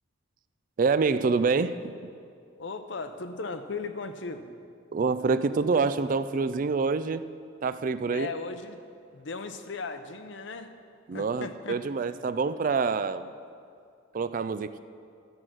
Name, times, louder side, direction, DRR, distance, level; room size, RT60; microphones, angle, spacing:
voice 1, 0.8-1.9 4.9-7.3 7.6-8.3 11.1-13.3 14.1-14.8, right 4 dB, 40° right, 13 dB, 0.3 m, -26 dB
voice 2, 2.6-4.5 8.1-8.8 9.1-10.7 11.1-11.8, left 4 dB, 65° left, 9 dB, 0.7 m, -37 dB
12.5 x 7.7 x 6.1 m, 2.3 s
head